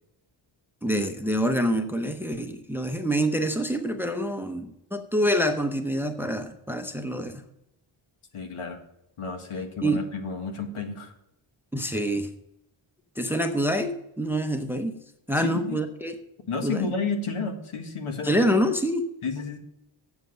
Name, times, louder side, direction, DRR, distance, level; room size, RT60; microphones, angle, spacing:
voice 1, 0.8-7.4 9.8-10.0 11.7-12.3 13.2-15.0 15.3-16.2 16.6-16.9 18.2-19.1, equal, 5° right, 7 dB, 0.7 m, -26 dB
voice 2, 8.3-8.8 9.2-11.1 15.4-15.8 16.5-18.4 19.2-19.6, left 4 dB, 80° left, 5 dB, 1.7 m, -31 dB
7.9 x 7.4 x 6.2 m, 0.81 s
wide cardioid pair, 150°, 49 cm